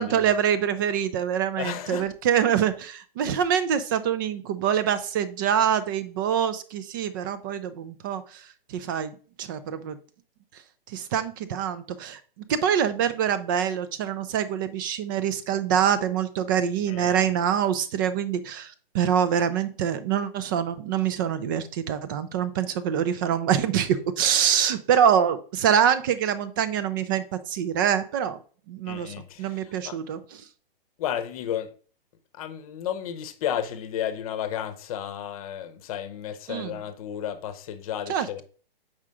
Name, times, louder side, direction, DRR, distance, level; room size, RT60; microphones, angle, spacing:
voice 1, 0.0-8.4 8.7-10.0 10.9-12.2 12.5-28.4 28.7-30.4 36.5-36.8 38.1-38.4, right 8 dB, 20° right, 0.4 m, -25 dB
voice 2, 1.6-2.1 16.9-17.2 28.9-29.6 29.8-30.0 31.0-31.7 32.4-38.4, left 10 dB, 35° left, 0.9 m, -33 dB
7.3 x 5.0 x 3.6 m
figure-of-eight pair, 130°, 30 cm